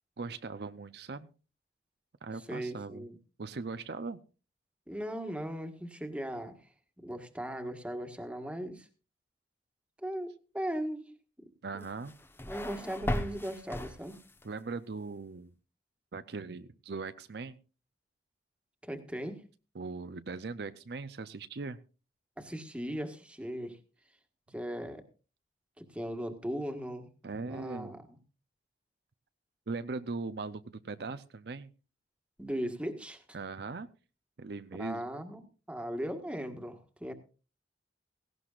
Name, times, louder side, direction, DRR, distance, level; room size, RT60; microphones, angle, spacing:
voice 1, 0.2-1.3 2.2-3.0 3.4-4.2 11.6-12.1 14.4-15.5 16.1-17.6 19.7-21.8 27.2-28.0 29.7-31.7 33.3-33.9 34.4-35.0, right 4 dB, 65° right, 12 dB, 0.6 m, -39 dB
voice 2, 2.5-3.2 4.9-6.6 7.0-8.9 10.0-11.1 11.7-11.9 12.5-14.2 18.8-19.4 22.4-23.8 24.5-25.0 25.8-27.1 27.5-28.2 32.4-33.2 34.8-35.4 35.7-37.1, equal, 5° right, 5 dB, 1.5 m, -38 dB
sound 1, 11.8-14.5, left 1 dB, 15° left, 0.9 m, -37 dB
17.5 x 16.5 x 2.4 m, 0.34 s
head